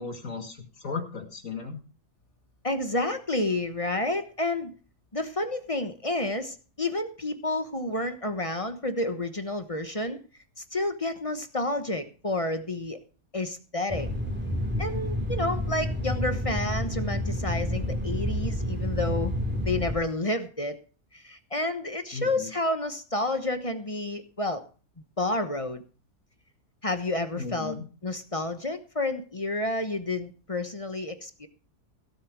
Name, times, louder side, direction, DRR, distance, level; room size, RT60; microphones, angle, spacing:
voice 1, 0.0-1.8 22.1-22.5 27.4-27.8, left 4 dB, 55° left, 3 dB, 2.7 m, -36 dB
voice 2, 2.6-4.7 5.1-10.2 10.6-13.0 13.3-14.1 14.8-19.3 19.6-20.8 21.1-24.6 25.2-25.8 26.8-31.5, left 2 dB, 25° left, 8 dB, 1.0 m, -30 dB
sound 1, 13.9-19.9, equal, 5° right, 2.9 m, -29 dB
16.5 x 8.0 x 4.7 m, 0.35 s
omnidirectional pair, 1.7 m